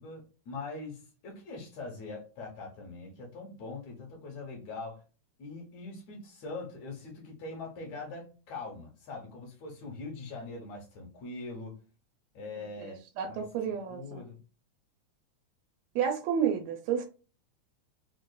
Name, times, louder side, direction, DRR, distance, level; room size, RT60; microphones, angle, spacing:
voice 1, 0.0-5.0 5.4-11.8 12.3-13.4 13.9-14.4, left 3 dB, 70° left, 2.2 m, -42 dB
voice 2, 13.2-14.2 16.0-17.0, right 8 dB, 80° right, 1.8 m, -30 dB
5.1 x 2.4 x 2.2 m
omnidirectional pair, 3.4 m